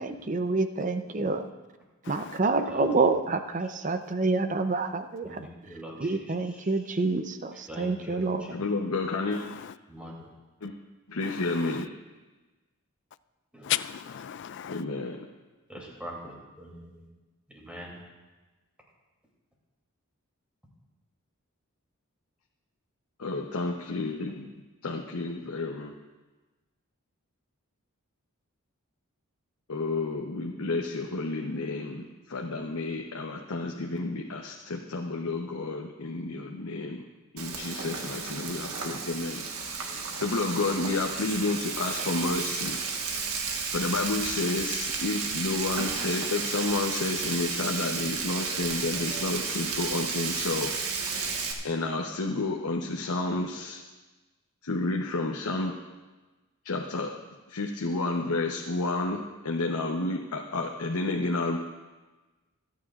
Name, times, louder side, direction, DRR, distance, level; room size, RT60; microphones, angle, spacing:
voice 1, 0.0-1.5 2.1-5.5 6.0-8.5, right 3 dB, 35° right, 8 dB, 0.6 m, -28 dB
voice 2, 2.0-2.4 9.3-9.7 11.2-11.8 13.6-14.8, left 12 dB, 55° left, 15 dB, 0.3 m, -35 dB
voice 3, 2.7-3.1 3.6-3.7 5.2-7.0 7.5-8.6 9.9-10.1 13.5-13.7 15.7-17.1 17.5-18.0, equal, 5° right, -3 dB, 2.7 m, -44 dB
voice 4, 8.5-9.4 10.6-10.7 11.1-11.9 14.7-15.2 23.2-24.5 24.8-25.9 29.7-37.0 37.3-39.4 40.2-42.8 43.7-50.7 51.6-53.8 54.6-55.7 56.6-57.1 57.5-61.6, left 2 dB, 85° left, 1 dB, 0.9 m, -30 dB
Frying (food), 37.4-51.5, right 5 dB, 80° right, 1.4 m, -32 dB
26.5 x 9.2 x 2.4 m, 1.2 s
head